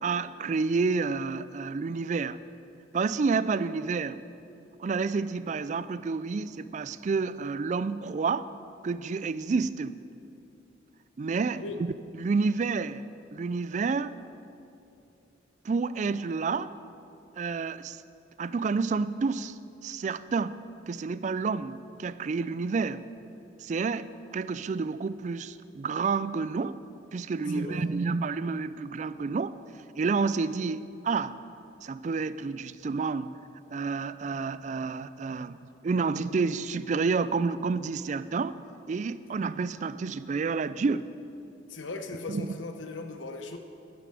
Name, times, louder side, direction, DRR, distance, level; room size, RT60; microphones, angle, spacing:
voice 1, 0.0-2.4 2.9-4.2 4.8-8.5 8.8-10.0 11.2-11.9 12.2-13.0 13.3-14.2 15.6-16.7 17.4-18.0 18.4-23.0 23.6-26.8 27.1-29.6 30.0-31.4 31.8-33.4 33.7-38.6 38.9-41.1 42.3-42.6, right 4 dB, 40° right, 15 dB, 0.3 m, -29 dB
voice 2, 27.5-27.9 41.7-43.6, left 3 dB, 85° left, 6 dB, 1.0 m, -38 dB
12.0 x 11.0 x 5.0 m, 2.7 s
head